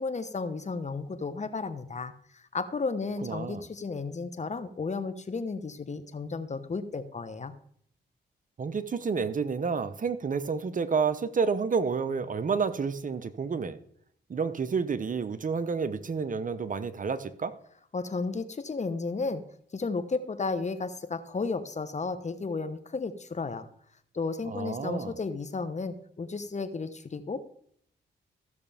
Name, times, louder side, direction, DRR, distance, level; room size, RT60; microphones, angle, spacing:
voice 1, 0.0-7.5 17.9-19.4 19.7-23.7 24.1-27.5, left 4 dB, 35° left, 12 dB, 1.0 m, -33 dB
voice 2, 3.2-3.6 8.6-13.8 14.3-17.5 24.5-25.1, right 5 dB, 45° right, 13 dB, 0.8 m, -30 dB
15.0 x 6.7 x 3.4 m, 0.64 s
cardioid pair, 60°, 20 cm